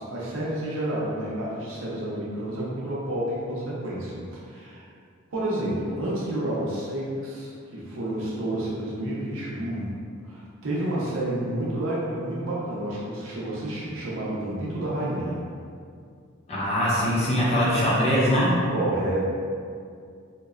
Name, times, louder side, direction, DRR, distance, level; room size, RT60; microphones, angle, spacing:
voice 1, 0.0-4.8 5.3-9.9 10.2-15.4 18.7-19.3, right 1 dB, 75° right, -6 dB, 0.6 m, -30 dB
voice 2, 16.5-18.6, equal, 30° left, -7 dB, 0.5 m, -22 dB
2.8 x 2.1 x 2.3 m, 2.3 s
head